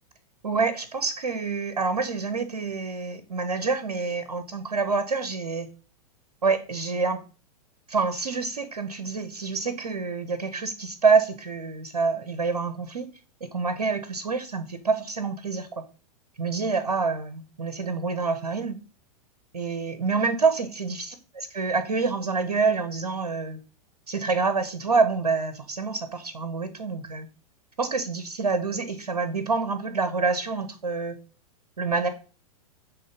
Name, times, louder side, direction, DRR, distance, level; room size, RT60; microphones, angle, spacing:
voice 1, 0.4-5.7 6.4-7.2 7.9-13.1 13.4-15.7 16.4-18.8 19.5-23.6 24.1-27.3 27.8-31.2 31.8-32.1, right 4 dB, 70° right, 9 dB, 0.9 m, -27 dB
7.8 x 3.3 x 5.2 m, 0.35 s
figure-of-eight pair, 100°, 20 cm